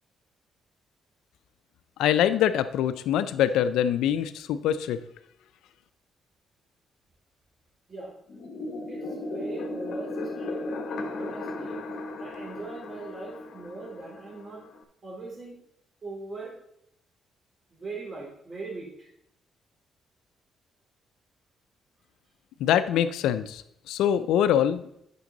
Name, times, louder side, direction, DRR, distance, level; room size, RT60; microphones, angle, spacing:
voice 1, 2.0-5.0 22.6-25.0, left 10 dB, 90° left, 12 dB, 0.5 m, -24 dB
sound 1, 8.3-14.8, left 2 dB, 65° left, 1.1 m, -36 dB
voice 2, 8.9-11.8 12.2-14.6 15.0-15.6 16.0-16.5 17.7-19.1, right 3 dB, 40° right, -3 dB, 3.5 m, -40 dB
9.3 x 6.2 x 3.9 m, 0.76 s
cardioid pair, 90°, 0 cm